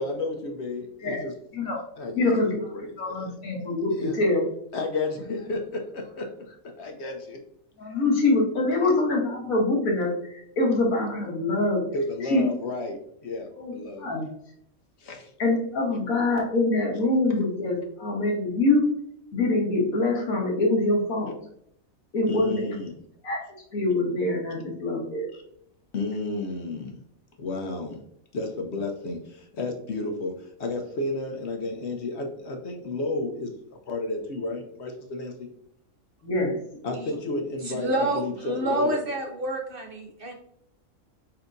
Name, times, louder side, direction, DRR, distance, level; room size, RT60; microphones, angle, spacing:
voice 1, 0.0-1.3 2.0-3.3 3.9-4.2 4.7-7.4 11.9-14.1 15.0-15.3 22.3-22.9 25.9-27.0 27.4-28.0 28.3-35.5 36.8-39.0, left 2 dB, 60° left, 4 dB, 0.9 m, -32 dB
voice 2, 1.5-1.8 2.2-2.6 3.0-4.5 7.8-11.8 12.2-12.4 13.5-13.7 14.0-14.3 15.4-18.9 19.3-21.3 22.1-22.6 23.2-23.5 23.7-25.3 36.2-36.6, left 2 dB, 80° left, -1 dB, 1.7 m, -24 dB
voice 3, 37.6-40.3, right 1 dB, 50° right, 2 dB, 0.7 m, -28 dB
4.7 x 4.4 x 2.6 m, 0.69 s
omnidirectional pair, 1.5 m